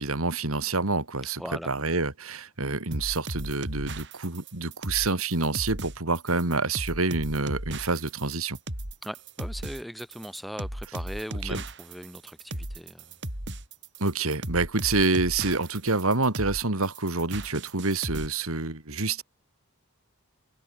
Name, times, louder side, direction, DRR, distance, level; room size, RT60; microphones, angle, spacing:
voice 1, 0.0-8.6 11.4-11.6 14.0-19.2, right 3 dB, 75° right, 2.7 m, -27 dB
voice 2, 1.4-1.7 9.0-13.1, equal, ahead, 5.5 m, -39 dB
sound 1, 2.9-18.3, right 1 dB, 55° right, 6.1 m, -36 dB
head